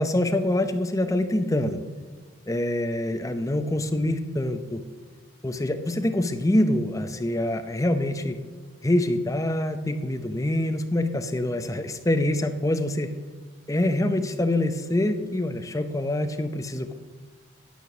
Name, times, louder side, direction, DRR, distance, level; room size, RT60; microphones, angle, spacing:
voice 1, 0.0-1.8 2.5-4.8 5.4-8.4 8.8-13.1 13.7-16.9, left 1 dB, 15° left, 7 dB, 0.6 m, -25 dB
9.3 x 8.4 x 6.1 m, 1.4 s
head